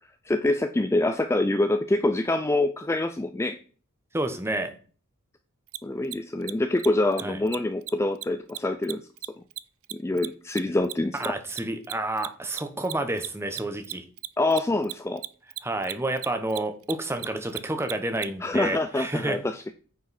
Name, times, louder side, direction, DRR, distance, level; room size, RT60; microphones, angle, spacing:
voice 1, 0.2-3.6 5.8-9.0 9.9-11.3 14.4-15.2 18.4-19.6, left 2 dB, 10° left, 9 dB, 0.3 m, -25 dB
voice 2, 4.1-4.7 7.2-7.4 11.1-14.0 15.6-19.4, right 1 dB, 10° right, 7 dB, 0.9 m, -29 dB
Mechanisms, 5.7-5.8 6.0-6.2 6.4-6.5 6.8-6.9 7.1-7.2 7.5-7.6 7.8-7.9 8.2-10.9 11.2-18.3, right 18 dB, 70° right, 0.4 m, -35 dB
9.3 x 5.1 x 4.1 m, 0.40 s
head